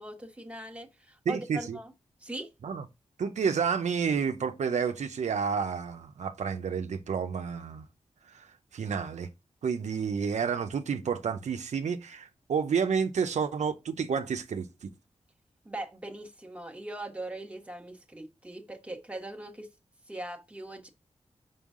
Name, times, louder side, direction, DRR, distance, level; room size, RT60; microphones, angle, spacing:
voice 1, 0.0-1.9 2.2-2.5 15.6-19.7 20.1-20.9, right 1 dB, 10° right, 1.3 m, -40 dB
voice 2, 1.3-1.8 2.6-2.8 3.2-7.8 8.3-8.5 8.7-9.3 9.6-14.9, right 6 dB, 85° right, 0.7 m, -30 dB
5.5 x 5.5 x 3.7 m
wide cardioid pair, 100°, 12 cm